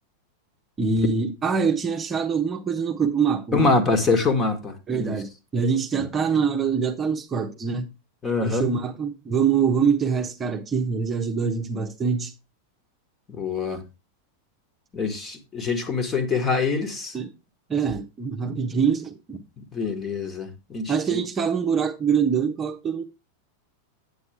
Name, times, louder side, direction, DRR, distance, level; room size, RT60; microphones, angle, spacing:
voice 1, 0.8-3.7 4.9-7.9 8.4-12.3 17.1-17.3 17.7-19.4 20.9-23.0, right 6 dB, 20° right, 1.0 m, -24 dB
voice 2, 3.5-5.2 8.2-8.7 13.3-13.8 14.9-17.2 19.6-21.2, left 4 dB, 20° left, 1.7 m, -25 dB
9.5 x 8.4 x 3.4 m
figure-of-eight pair, 90°, 0 cm